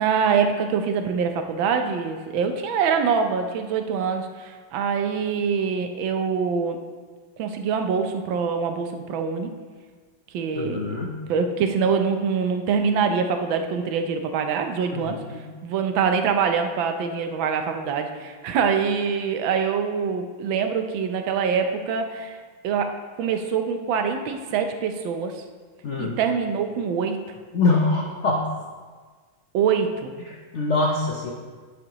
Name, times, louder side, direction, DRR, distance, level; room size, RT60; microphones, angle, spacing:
voice 1, 0.0-6.8 7.4-9.5 10.3-11.0 11.3-15.2 15.6-25.4 26.0-27.2 29.5-30.2, right 6 dB, 75° right, 6 dB, 1.4 m, -24 dB
voice 2, 10.6-11.2 14.9-15.4 25.8-26.2 27.5-28.5 30.3-31.3, left 3 dB, 75° left, 0 dB, 0.6 m, -24 dB
11.5 x 7.4 x 2.9 m, 1.5 s
omnidirectional pair, 2.3 m